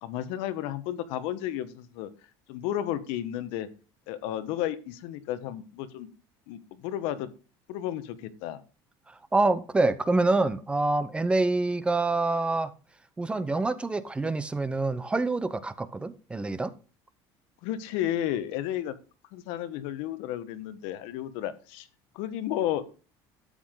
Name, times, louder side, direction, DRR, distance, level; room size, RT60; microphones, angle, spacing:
voice 1, 0.0-2.1 2.5-3.7 4.1-6.1 6.5-7.3 7.7-8.6 17.6-18.9 19.3-21.9 22.1-22.8, left 12 dB, 75° left, 1.4 m, -32 dB
voice 2, 9.3-12.7 13.2-16.7, right 2 dB, 10° right, 0.7 m, -26 dB
12.5 x 8.6 x 3.8 m
cardioid pair, 150°, 9 cm